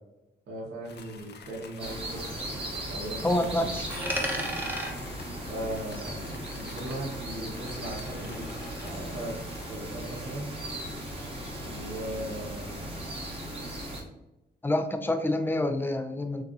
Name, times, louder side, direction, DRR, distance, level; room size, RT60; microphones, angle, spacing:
voice 1, 0.5-2.4 2.9-3.8 5.4-8.5 8.8-9.4 9.7-10.5 11.6-12.9, right 1 dB, 70° right, -3 dB, 1.5 m, -38 dB
sound 1, 0.8-9.7, left 4 dB, 65° left, 0.7 m, -50 dB
sound 2, 1.8-14.0, right 1 dB, 30° right, 1.5 m, -37 dB
voice 2, 3.2-4.0 14.6-16.4, left 1 dB, 10° left, 7 dB, 0.5 m, -27 dB
Coin (dropping), 3.9-6.7 6.9-8.9, equal, 10° right, 1.0 m, -37 dB
6.8 x 2.6 x 2.7 m, 0.96 s
cardioid pair, 90°, 19 cm